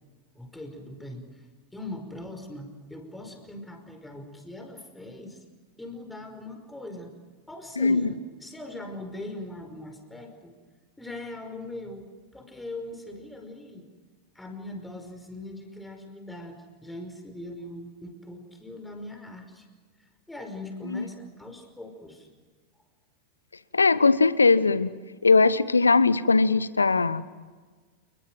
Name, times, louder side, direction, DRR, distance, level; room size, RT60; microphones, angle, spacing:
voice 1, 0.4-1.5 1.7-5.4 5.8-7.1 7.5-10.6 11.0-12.1 12.3-13.9 14.4-19.7 20.3-22.3, left 1 dB, 5° left, 5 dB, 5.3 m, -41 dB
voice 2, 7.8-8.1 20.9-21.1 23.7-24.9 25.2-27.3, left 4 dB, 75° left, 17 dB, 1.0 m, -20 dB
29.5 x 22.0 x 7.7 m, 1.4 s
figure-of-eight pair, 90°, 0 cm